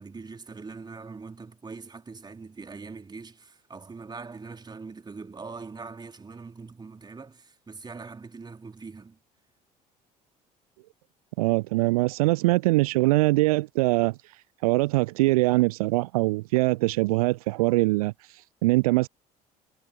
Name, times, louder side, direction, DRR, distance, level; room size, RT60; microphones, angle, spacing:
voice 1, 0.0-9.2, right 4 dB, 20° right, 3.1 m, -42 dB
voice 2, 11.4-19.1, right 21 dB, 65° right, 0.4 m, -23 dB
figure-of-eight pair, 60°, 20 cm